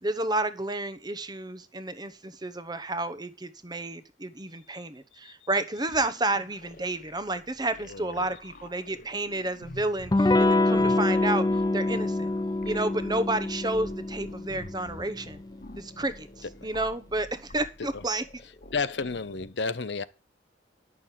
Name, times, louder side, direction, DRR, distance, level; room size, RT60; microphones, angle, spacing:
voice 1, 0.0-11.5 11.7-12.3 12.6-15.4 15.8-18.2, right 2 dB, 25° right, 1.0 m, -31 dB
sound 1, 5.9-19.5, left 1 dB, 50° left, 1.3 m, -48 dB
voice 2, 7.9-8.3 18.7-20.0, left 4 dB, 70° left, 0.8 m, -31 dB
Electric guitar / Strum, 10.1-15.5, left 2 dB, 20° left, 0.5 m, -26 dB
10.5 x 6.5 x 7.5 m
head